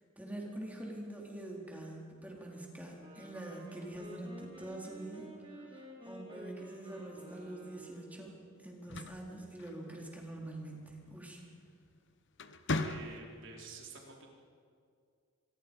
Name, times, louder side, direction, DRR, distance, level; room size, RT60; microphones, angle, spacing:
voice 1, 0.2-5.3 5.5-11.4, right 1 dB, 10° right, -2 dB, 3.9 m, -45 dB
Wind instrument woodwind instrument, 3.0-8.1, equal, 25° right, 4.3 m, -51 dB
sound 1, 8.7-10.2 11.7-11.9 12.3-13.5, left 2 dB, 60° left, 1.1 m, -38 dB
voice 2, 12.7-14.3, right 3 dB, 65° right, -1 dB, 4.2 m, -49 dB
26.5 x 22.0 x 5.5 m, 2.2 s
head